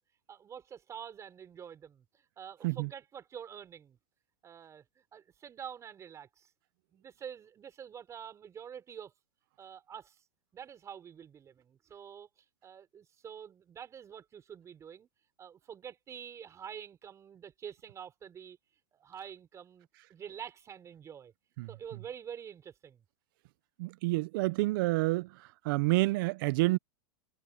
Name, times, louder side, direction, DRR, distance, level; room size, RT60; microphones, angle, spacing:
voice 1, 0.3-4.0 4.4-6.5 6.9-9.1 9.6-10.2 10.5-12.3 12.6-15.1 15.4-18.6 18.9-21.3 21.7-23.0, right 8 dB, 20° right, 5.1 m, -47 dB
voice 2, 23.8-25.3 25.6-26.8, right 21 dB, 55° right, 0.7 m, -28 dB
hypercardioid pair, 140°, 14 cm